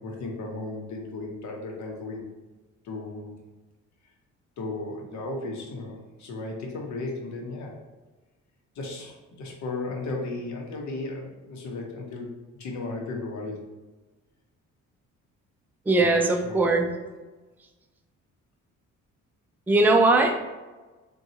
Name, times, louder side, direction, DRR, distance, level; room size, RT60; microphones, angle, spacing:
voice 1, 0.0-2.3 2.8-3.3 4.6-7.8 8.7-13.6 16.0-16.1 16.4-16.6, left 2 dB, 70° left, 1 dB, 0.8 m, -35 dB
voice 2, 15.9-16.8 19.7-20.4, right 2 dB, 5° right, 4 dB, 0.3 m, -20 dB
3.8 x 2.3 x 2.8 m, 1.2 s
cardioid pair, 90°, 30 cm